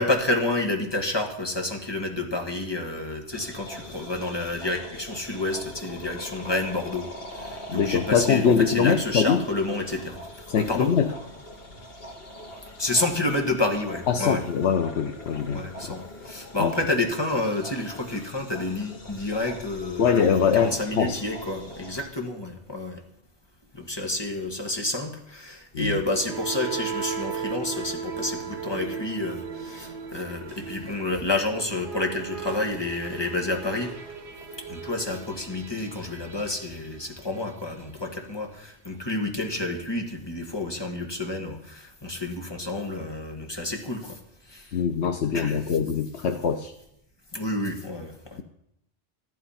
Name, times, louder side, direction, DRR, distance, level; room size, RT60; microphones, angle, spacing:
voice 1, 0.0-10.2 10.6-10.9 12.8-14.4 15.5-23.0 23.7-33.9 34.7-44.2 44.5-44.8 45.3-45.6 47.3-48.4, left 2 dB, 25° left, 2 dB, 1.7 m, -29 dB
sound 1, 3.3-22.1, equal, 60° left, 2.1 m, -42 dB
voice 2, 7.7-9.4 10.5-11.1 14.1-15.6 16.6-16.7 20.0-21.2 25.7-26.0 44.7-46.7, left 7 dB, 90° left, 6 dB, 1.1 m, -23 dB
sound 2, 25.8-37.7, right 6 dB, 80° right, 1.7 m, -36 dB
13.5 x 11.5 x 5.7 m, 0.79 s
omnidirectional pair, 1.1 m